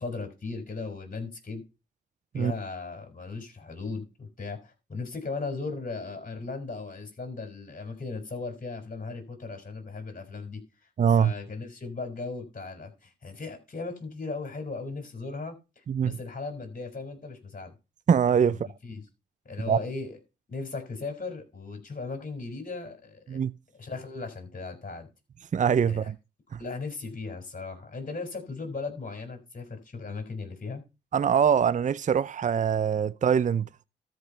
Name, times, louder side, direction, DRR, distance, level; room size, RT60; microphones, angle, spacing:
voice 1, 0.0-1.6 2.3-10.9 11.2-17.7 18.5-19.0 19.4-20.2 20.5-23.4 23.7-25.1 25.8-26.1 26.6-30.8, left 3 dB, 40° left, 4.5 m, -37 dB
voice 2, 11.0-11.3 15.9-16.2 18.1-18.6 19.7-19.8 23.3-23.5 25.5-26.1 26.5-26.6 31.1-33.8, right 7 dB, 40° right, 0.5 m, -23 dB
13.0 x 5.4 x 5.4 m
supercardioid pair, 50°, 21 cm